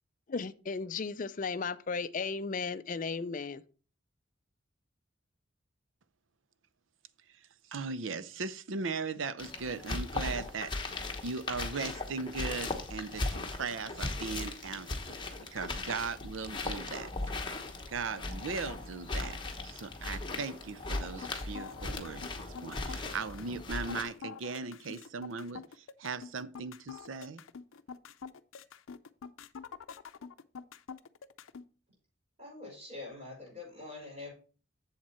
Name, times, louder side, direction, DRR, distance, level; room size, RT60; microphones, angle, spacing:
voice 1, 0.3-3.6, left 4 dB, 40° left, 0.4 m, -35 dB
voice 2, 7.7-10.7 11.2-15.2 15.5-17.1 17.9-27.4, right 4 dB, 75° right, 0.6 m, -38 dB
sound 1, 9.4-24.0, left 2 dB, 25° left, 1.1 m, -38 dB
sound 2, 21.1-31.7, left 6 dB, 90° left, 0.5 m, -46 dB
voice 3, 32.4-34.3, left 3 dB, 35° right, 5.6 m, -45 dB
7.5 x 7.4 x 4.3 m
head